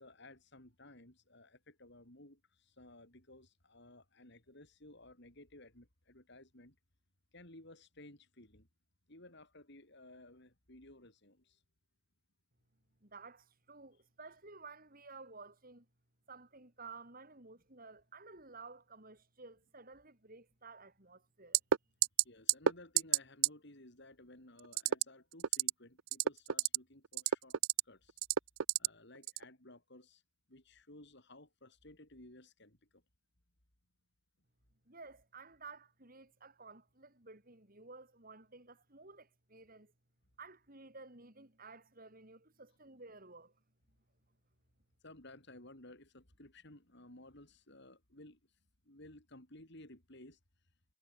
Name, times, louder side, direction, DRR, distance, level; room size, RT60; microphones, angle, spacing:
voice 1, 0.0-6.8 7.3-8.7 9.1-11.6 22.2-27.6 27.8-28.2 28.7-30.2 30.5-33.0 45.0-48.4 48.8-50.4, left 1 dB, 55° left, 5.0 m, -57 dB
voice 2, 13.0-15.8 16.3-21.6 34.9-39.9 40.4-43.5, right 4 dB, 45° right, 4.7 m, -54 dB
sound 1, 21.5-21.8 22.0-22.2 22.5-22.7 23.0-23.2 23.4-23.5 24.7-25.0 25.4-25.7 26.1-26.8 27.1-27.8 28.2-28.9 29.3-29.4, right 10 dB, 75° right, 0.6 m, -28 dB
head